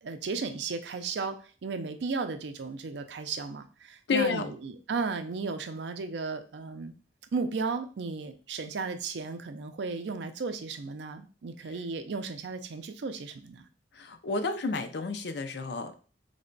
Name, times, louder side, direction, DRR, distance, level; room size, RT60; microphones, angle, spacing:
voice 1, 0.0-6.9 7.3-13.7, right 4 dB, 75° right, 8 dB, 0.4 m, -35 dB
voice 2, 4.1-4.5 13.9-15.9, left 4 dB, 65° left, 8 dB, 0.5 m, -30 dB
3.3 x 2.2 x 3.8 m, 0.37 s
head